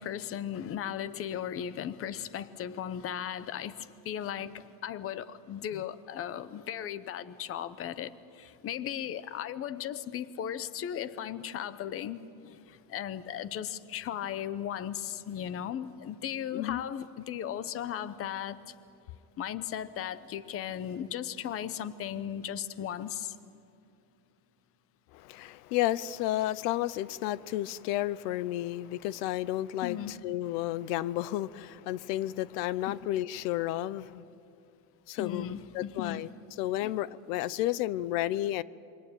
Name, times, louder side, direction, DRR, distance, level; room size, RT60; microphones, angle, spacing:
voice 1, 0.0-18.6 19.4-23.4 29.8-30.2 32.9-33.0 35.2-36.2 36.8-36.9, left 9 dB, 30° left, 15 dB, 0.8 m, -37 dB
voice 2, 16.5-16.8 25.1-34.3 35.1-36.3 36.6-38.6, left 14 dB, 90° left, 19 dB, 0.8 m, -32 dB
27.0 x 23.5 x 9.1 m, 2.6 s
cardioid pair, 160°, 46 cm